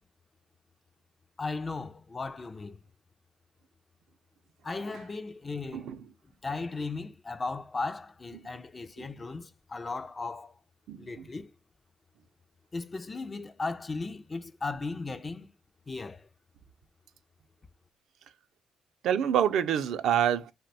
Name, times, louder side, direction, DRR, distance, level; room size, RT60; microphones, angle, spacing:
voice 1, 1.4-2.8 4.6-5.9 6.4-10.5 11.0-11.5 12.7-15.5 15.9-16.3, left 3 dB, 30° left, 0.3 m, -36 dB
voice 2, 10.9-11.3 19.0-20.5, right 9 dB, 75° right, 0.3 m, -27 dB
2.6 x 2.1 x 3.9 m
cardioid pair, 90°, 0 cm